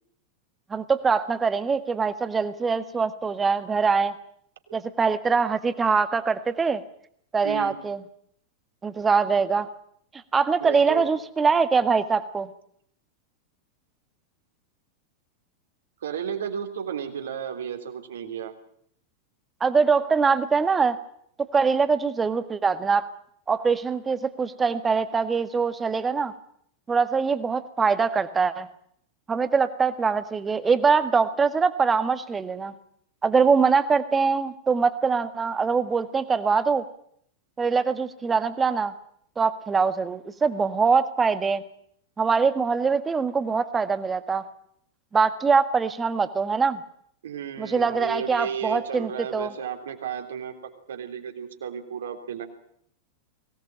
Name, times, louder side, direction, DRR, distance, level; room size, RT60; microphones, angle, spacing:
voice 1, 0.7-4.1 4.7-6.8 7.3-8.0 8.8-9.7 10.3-12.5 19.6-21.0 21.5-23.1 23.5-26.3 26.9-28.7 29.3-32.7 33.2-36.8 37.6-38.9 39.4-41.6 42.2-44.4 45.1-46.8 47.6-49.5, right 5 dB, 15° right, 11 dB, 1.7 m, -23 dB
voice 2, 7.4-7.8 10.6-11.1 16.0-18.5 47.2-50.6 50.9-52.4, right 8 dB, 65° right, 5 dB, 3.3 m, -33 dB
22.5 x 18.0 x 8.7 m, 0.68 s
figure-of-eight pair, 90°, 0 cm